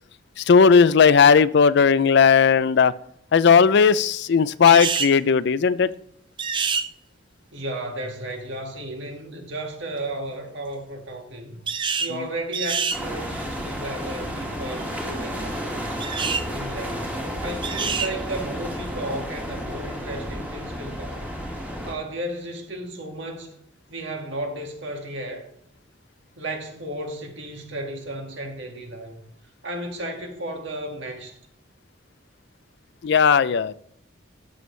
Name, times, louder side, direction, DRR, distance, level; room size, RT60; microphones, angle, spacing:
voice 1, 0.4-2.9 3.3-5.9 33.0-33.7, left 6 dB, 60° left, 0.4 m, -16 dB
sound 1, 4.7-5.2 6.4-6.9 11.7-12.1 12.5-13.0 16.0-16.5 17.6-18.1, right 6 dB, 25° right, 0.5 m, -26 dB
voice 2, 7.5-11.6 12.0-16.0 16.5-21.3 21.8-23.6 23.9-25.5 26.4-29.2 29.6-31.4, right 1 dB, 65° right, 2.0 m, -34 dB
sound 2, 12.9-21.9, equal, 10° right, 1.9 m, -32 dB
14.0 x 7.1 x 3.2 m
head